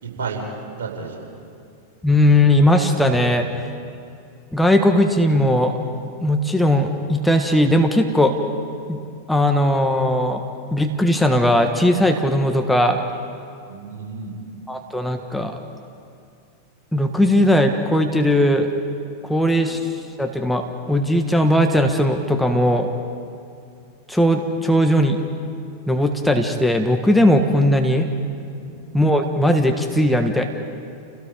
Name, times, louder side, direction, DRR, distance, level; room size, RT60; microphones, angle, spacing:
voice 1, 0.0-0.5 0.8-1.3 13.7-14.4 19.3-19.6 28.6-28.8, right 5 dB, 65° right, -1 dB, 4.7 m, -32 dB
voice 2, 2.0-3.5 4.5-5.7 6.2-8.3 8.9-9.0 9.3-10.4 10.7-13.0 14.7-15.6 16.9-18.7 19.2-19.8 20.2-22.9 24.1-25.2 25.9-28.1 28.9-30.4, left 1 dB, 5° left, 4 dB, 1.4 m, -18 dB
29.5 x 17.5 x 5.1 m, 2.4 s
figure-of-eight pair, 90°, 0 cm